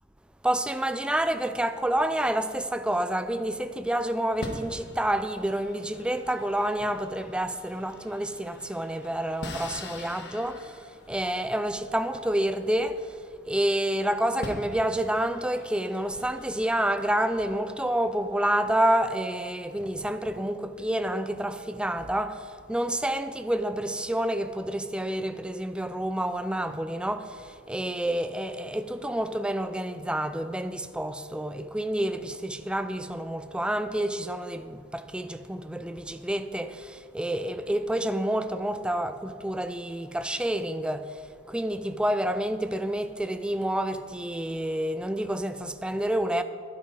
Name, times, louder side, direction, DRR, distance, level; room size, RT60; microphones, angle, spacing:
voice 1, 0.4-41.2 41.5-46.4, right 1 dB, 5° right, 0.3 m, -29 dB
sound 1, 3.0-3.7 4.4-13.5 14.0-14.1 14.4-17.5, left 2 dB, 60° left, 1.2 m, -44 dB
12.5 x 9.5 x 4.1 m
head